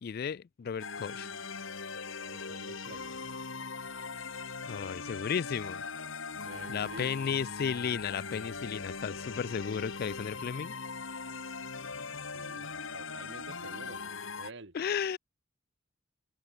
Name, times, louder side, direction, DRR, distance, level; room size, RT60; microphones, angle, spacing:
voice 1, 0.0-1.3 4.7-5.8 6.7-10.7 14.7-15.2, left 7 dB, 50° left, 0.3 m, -34 dB
sound 1, 0.8-14.5, left 4 dB, 80° left, 2.5 m, -40 dB
voice 2, 2.2-3.1 6.3-7.4 12.3-12.7 12.9-14.0 14.4-14.8, right 2 dB, 60° right, 2.2 m, -49 dB
head